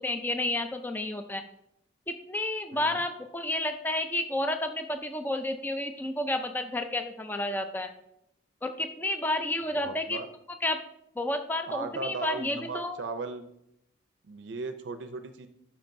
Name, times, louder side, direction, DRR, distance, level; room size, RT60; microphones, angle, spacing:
voice 1, 0.0-1.4 2.1-7.9 8.6-10.2 10.6-10.8 11.2-13.0, left 1 dB, 10° left, 7 dB, 0.4 m, -31 dB
voice 2, 9.7-10.3 11.7-13.4 14.2-15.5, right 4 dB, 65° right, 8 dB, 0.5 m, -37 dB
11.5 x 5.9 x 2.6 m, 0.79 s
head